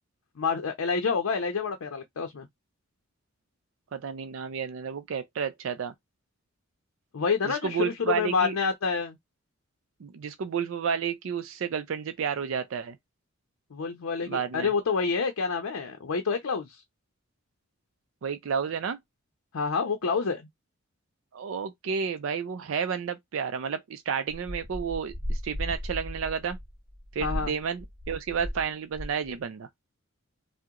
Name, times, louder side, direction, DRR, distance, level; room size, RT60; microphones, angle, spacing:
voice 1, 0.4-2.5 7.1-9.2 13.7-16.8 19.5-20.4 27.2-27.5, left 5 dB, 90° left, 0.6 m, -28 dB
voice 2, 3.9-5.9 7.4-8.6 10.0-13.0 14.3-14.7 18.2-19.0 21.3-26.6 27.1-29.7, right 6 dB, 70° right, 0.4 m, -31 dB
sound 1, 24.3-28.7 28.9-29.3, equal, 35° right, 1.1 m, -36 dB
2.8 x 2.1 x 3.6 m
head